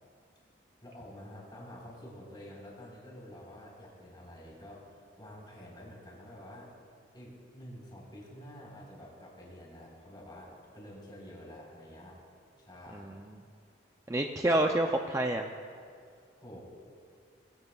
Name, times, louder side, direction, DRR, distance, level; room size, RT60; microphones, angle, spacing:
voice 1, 0.8-6.7 7.1-12.2 12.6-13.1 16.0-16.6, equal, 25° left, -4 dB, 4.1 m, -49 dB
voice 2, 12.9-13.3 14.1-15.5, right 1 dB, 15° right, 3 dB, 0.4 m, -28 dB
21.5 x 16.0 x 2.3 m, 2.2 s
head